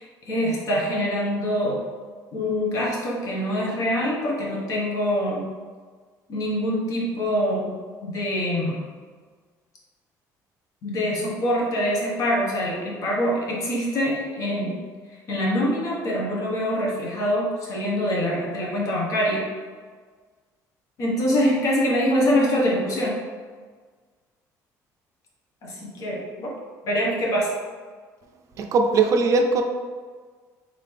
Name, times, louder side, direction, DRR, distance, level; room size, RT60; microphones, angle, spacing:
voice 1, 0.0-1.8 2.3-5.4 6.3-7.7 8.0-8.9 10.8-14.8 15.1-19.4 21.0-23.2 25.6-26.5 26.8-27.5, equal, 55° left, -3 dB, 1.2 m, -24 dB
voice 2, 28.6-29.6, right 4 dB, 50° right, 4 dB, 0.4 m, -20 dB
3.7 x 3.7 x 3.3 m, 1.5 s
cardioid pair, 135°, 7 cm